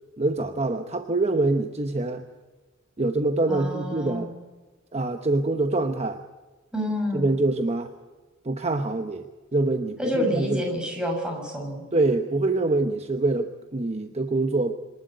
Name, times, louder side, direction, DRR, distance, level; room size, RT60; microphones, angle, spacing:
voice 1, 0.2-2.2 3.0-4.3 4.9-6.2 7.1-7.9 8.4-9.3 9.5-10.6 11.9-14.7, right 2 dB, 35° right, 7 dB, 1.0 m, -25 dB
voice 2, 3.5-4.3 6.7-7.3 10.0-11.8, equal, 5° right, 0 dB, 6.9 m, -28 dB
26.5 x 12.0 x 9.3 m, 1.3 s
head